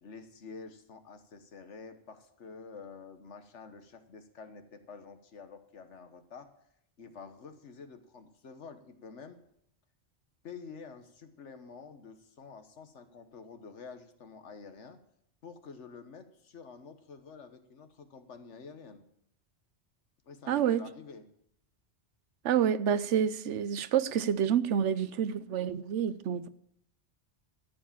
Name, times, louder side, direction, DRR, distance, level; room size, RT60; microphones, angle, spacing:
voice 1, 0.0-6.5 7.0-9.4 10.4-15.0 15.4-19.0 20.2-21.3, left 5 dB, 80° left, 1.5 m, -49 dB
voice 2, 20.5-20.8 22.4-26.5, right 8 dB, 85° right, 1.0 m, -28 dB
13.0 x 7.5 x 7.1 m
omnidirectional pair, 1.2 m